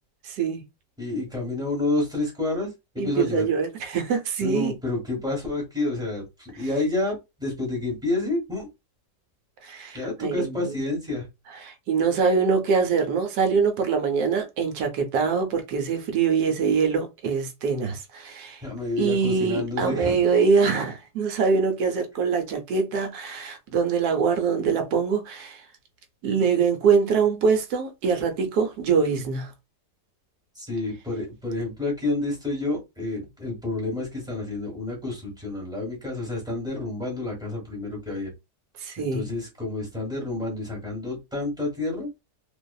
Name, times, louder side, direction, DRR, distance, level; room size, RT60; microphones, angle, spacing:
voice 1, 0.2-0.6 3.0-4.7 9.6-10.8 11.6-18.6 19.0-25.6 26.2-29.5 38.8-39.2, right 5 dB, 70° right, 1.1 m, -24 dB
voice 2, 1.0-2.7 2.9-3.4 4.4-8.7 9.9-11.2 18.6-20.3 30.5-38.3 39.0-42.1, left 2 dB, 5° right, 0.9 m, -29 dB
2.6 x 2.4 x 2.3 m
omnidirectional pair, 1.8 m